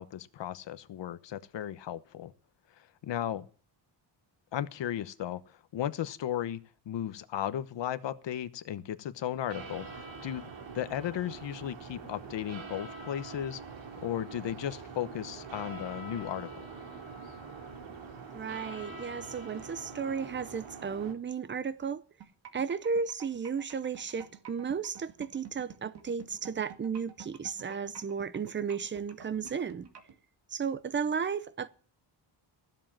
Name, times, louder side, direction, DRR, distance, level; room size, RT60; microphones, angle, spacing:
voice 1, 0.0-2.3 2.8-3.5 4.5-6.6 6.9-10.5 10.7-13.6 14.0-16.7, left 11 dB, 65° left, 1.0 m, -35 dB
sound 1, 9.5-21.1, right 4 dB, 75° right, 2.6 m, -44 dB
voice 2, 18.3-22.0 22.5-29.9 30.5-31.7, right 6 dB, 25° right, 0.6 m, -34 dB
sound 2, 22.2-30.1, right 8 dB, 60° right, 2.3 m, -48 dB
15.0 x 7.8 x 7.4 m
wide cardioid pair, 170°, 46 cm